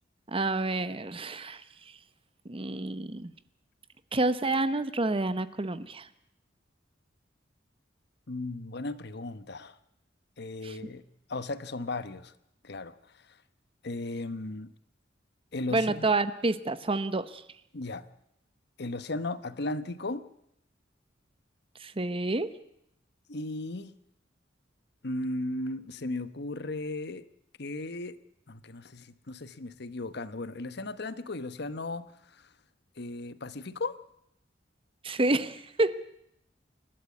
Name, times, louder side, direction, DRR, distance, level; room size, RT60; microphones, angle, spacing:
voice 1, 0.3-1.6 2.4-3.3 4.1-6.1 10.6-10.8 15.7-17.4 21.8-22.5 35.0-36.1, right 2 dB, 30° right, 14 dB, 0.9 m, -29 dB
voice 2, 8.3-9.8 10.4-11.0 11.3-12.3 12.6-13.4 13.8-14.7 15.5-16.1 17.7-18.1 18.8-20.3 23.3-23.9 25.0-27.3 27.6-28.2 28.5-32.5 33.0-34.0, left 2 dB, 60° left, 14 dB, 1.1 m, -36 dB
28.0 x 12.5 x 8.5 m, 0.78 s
head